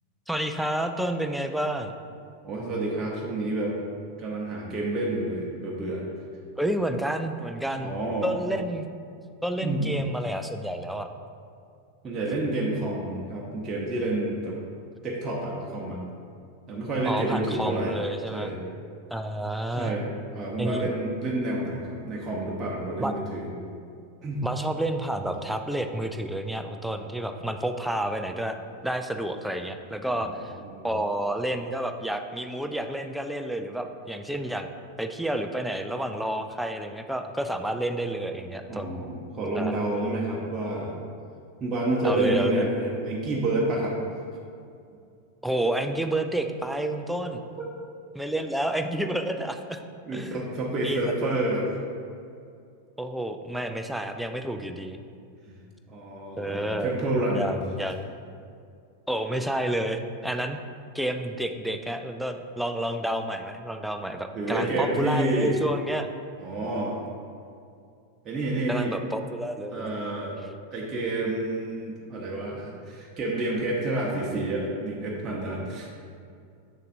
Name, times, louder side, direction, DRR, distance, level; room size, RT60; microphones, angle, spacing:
voice 1, 0.3-1.9 6.6-8.0 8.2-8.9 9.4-11.1 17.1-18.5 19.1-20.0 20.6-20.9 23.0-23.1 24.4-28.6 28.8-30.5 30.8-34.7 35.0-38.9 39.6-39.7 42.0-42.6 45.4-47.4 48.1-49.8 50.1-50.4 50.8-51.1 53.0-55.0 56.4-56.9 57.3-58.1 59.1-60.6 60.9-66.1 68.7-69.9, right 1 dB, ahead, 6 dB, 0.4 m, -30 dB
voice 2, 2.4-3.8 4.2-6.1 7.8-8.3 9.6-9.9 12.0-14.6 15.0-16.0 16.7-18.0 18.3-18.6 19.8-20.1 20.3-23.5 24.2-24.5 30.1-30.3 30.6-30.9 38.7-41.0 41.6-44.0 47.6-47.7 50.1-51.7 55.5-55.6 55.9-57.5 64.3-65.6 66.4-67.0 68.2-68.9 69.7-70.4 70.7-75.9, right 2 dB, 20° right, -4 dB, 0.9 m, -29 dB
7.2 x 6.6 x 2.7 m, 2.4 s
figure-of-eight pair, 90°, 0 cm